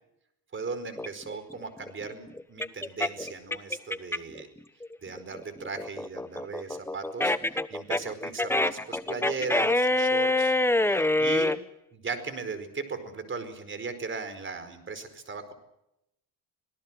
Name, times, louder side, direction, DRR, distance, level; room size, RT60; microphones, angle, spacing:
voice 1, 0.5-4.5 5.0-7.3 7.7-10.5 10.8-11.6 11.9-15.5, right 4 dB, 30° right, 11 dB, 4.9 m, -37 dB
sound 1, 1.0-4.4 4.8-11.6, left 2 dB, 5° left, 1.0 m, -26 dB
26.0 x 17.5 x 7.6 m, 0.84 s
supercardioid pair, 90°, 38 cm